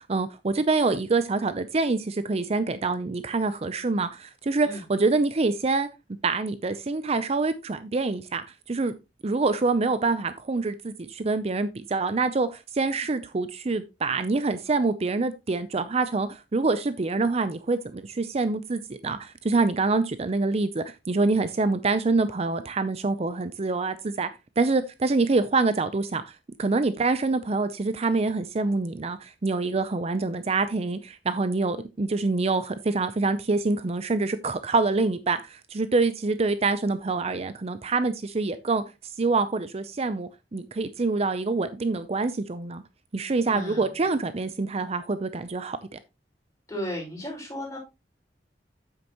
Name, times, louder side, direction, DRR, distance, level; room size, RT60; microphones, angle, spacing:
voice 1, 0.0-5.9 6.2-8.9 9.2-24.3 24.6-26.2 26.6-38.8 39.2-42.8 43.1-46.0, right 3 dB, 35° right, 0.5 m, -26 dB
voice 2, 43.5-43.9 46.7-47.8, equal, 20° left, 5.4 m, -35 dB
8.9 x 8.1 x 2.9 m
head